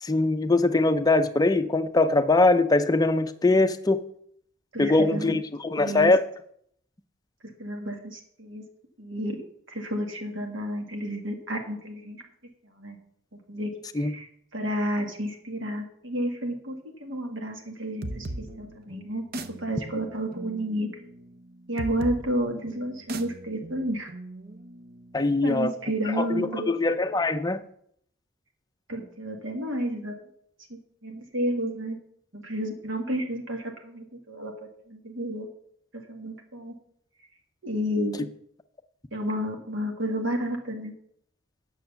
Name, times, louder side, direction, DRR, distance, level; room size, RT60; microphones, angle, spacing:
voice 1, 0.0-4.0 4.8-6.2 13.9-14.1 25.1-25.7 26.0-27.6, left 2 dB, 20° left, 9 dB, 0.5 m, -22 dB
voice 2, 4.7-5.4 5.8-6.1 7.6-8.6 9.0-9.4 9.7-12.2 12.8-13.0 13.5-18.3 18.6-19.2 19.6-20.9 21.7-24.1 25.4-26.7 28.9-30.1 31.0-32.0 32.3-35.5 36.1-36.7 37.6-38.3 39.1-40.9, equal, 65° right, 3 dB, 1.6 m, -31 dB
sound 1, 18.0-25.4, right 2 dB, 45° right, 0.7 m, -39 dB
9.3 x 6.4 x 6.9 m, 0.69 s
head